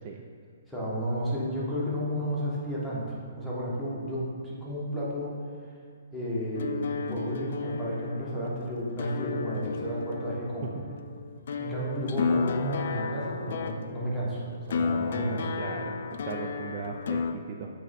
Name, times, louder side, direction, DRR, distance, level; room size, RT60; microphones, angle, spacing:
voice 1, 0.7-5.4 6.1-10.7 11.6-14.4 14.7-15.5, equal, ahead, -9 dB, 1.1 m, -32 dB
sound 1, 6.5-17.3, left 5 dB, 60° left, 0.3 m, -33 dB
voice 2, 15.6-15.9 16.3-17.7, right 6 dB, 35° right, 2 dB, 0.3 m, -38 dB
8.0 x 3.1 x 4.1 m, 2.1 s
hypercardioid pair, 165°, 0 cm